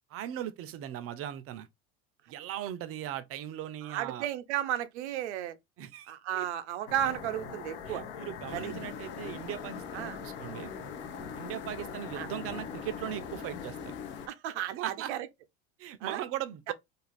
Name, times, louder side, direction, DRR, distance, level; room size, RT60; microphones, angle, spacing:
voice 1, 0.1-1.7 2.3-4.3 5.8-6.5 7.9-10.7 11.3-13.9 14.7-15.1 15.8-16.7, right 11 dB, 45° right, 0.5 m, -39 dB
voice 2, 3.8-5.6 6.1-8.0 8.5-8.7 9.9-10.2 12.2-12.3 14.3-15.3 16.0-16.2 16.7-16.8, right 11 dB, 90° right, 0.5 m, -34 dB
sound 1, 6.9-14.3, left 6 dB, 75° left, 0.8 m, -42 dB
sound 2, 8.5-14.3, left 8 dB, 35° left, 0.5 m, -46 dB
2.4 x 2.4 x 3.2 m
supercardioid pair, 100°, 33 cm